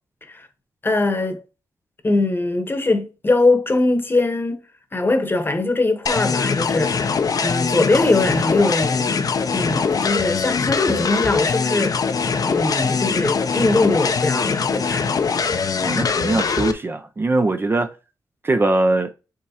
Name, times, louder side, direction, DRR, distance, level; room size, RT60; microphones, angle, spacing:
voice 1, 0.8-1.4 2.0-4.6 4.9-9.2 9.5-12.0 12.4-15.1, left 2 dB, 30° left, 0.9 m, -21 dB
sound 1, 6.1-16.7, left 5 dB, 55° left, 0.5 m, -22 dB
voice 2, 15.8-17.9 18.4-19.1, right 2 dB, 30° right, 0.4 m, -21 dB
5.6 x 3.1 x 2.8 m
cardioid pair, 75°, 8 cm